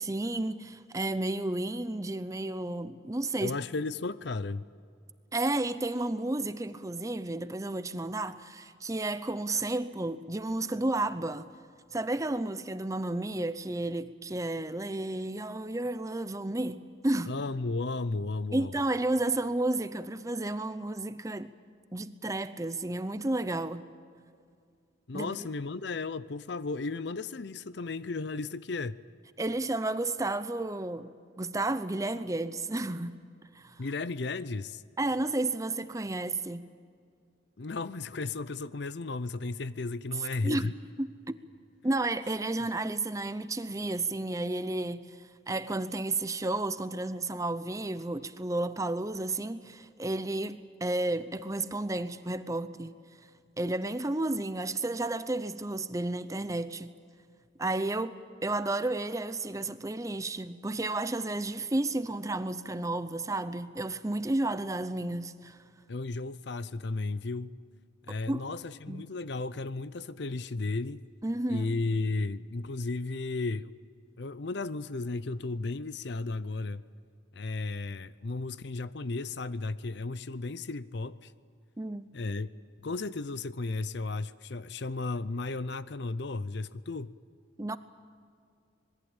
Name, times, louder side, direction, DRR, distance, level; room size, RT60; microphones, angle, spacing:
voice 1, 0.0-3.6 5.3-11.4 11.9-17.3 18.5-21.5 21.9-23.9 25.1-25.5 29.4-33.2 33.5-33.8 35.0-36.7 40.4-40.7 41.0-41.4 41.8-45.2 45.5-52.9 53.6-56.9 57.6-65.6 68.1-68.5 68.9-69.1 71.2-71.7 81.8-82.1 87.6-87.8, right 2 dB, 15° right, 0.6 m, -32 dB
voice 2, 3.4-4.7 17.3-18.7 25.1-29.0 33.8-34.8 37.6-40.7 65.9-67.5 68.1-71.0 71.5-73.7 74.2-76.8 77.3-81.3 82.1-82.5 82.8-87.1, left 3 dB, 55° left, 0.6 m, -34 dB
26.0 x 21.0 x 8.9 m
head